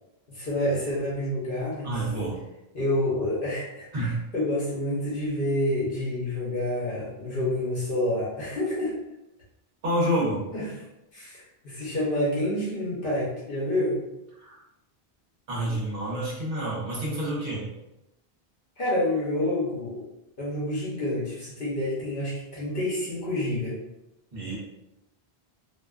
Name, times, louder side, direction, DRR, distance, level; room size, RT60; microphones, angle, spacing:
voice 1, 0.3-2.0 2.7-9.0 10.5-10.7 11.1-14.0 18.8-20.0 20.4-23.8, left 1 dB, 60° left, -7 dB, 0.9 m, -28 dB
voice 2, 1.8-2.4 3.9-4.2 9.8-10.5 14.4-14.5 15.5-17.7 24.3-24.6, right 1 dB, 65° right, -6 dB, 1.1 m, -28 dB
2.6 x 2.2 x 2.3 m, 0.91 s
omnidirectional pair, 1.0 m